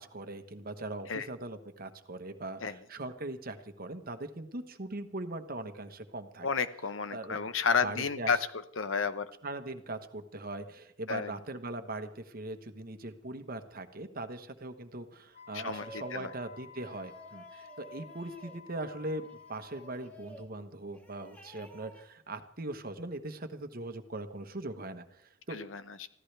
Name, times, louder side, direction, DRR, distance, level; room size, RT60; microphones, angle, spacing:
voice 1, 0.0-6.5 7.1-7.5 7.8-8.3 9.4-25.6, right 2 dB, 50° right, 8 dB, 1.3 m, -40 dB
voice 2, 6.4-8.4 8.8-9.3 11.1-11.4 15.5-16.3 25.5-26.1, left 5 dB, 85° left, 12 dB, 1.0 m, -31 dB
Wind instrument woodwind instrument, 15.3-20.1, left 6 dB, 35° left, 1.0 m, -52 dB
sound 1, 15.6-16.3 16.8-18.6 19.2-20.5 20.9-22.0, right 1 dB, 10° left, 2.2 m, -52 dB
25.0 x 15.5 x 3.4 m, 0.72 s
head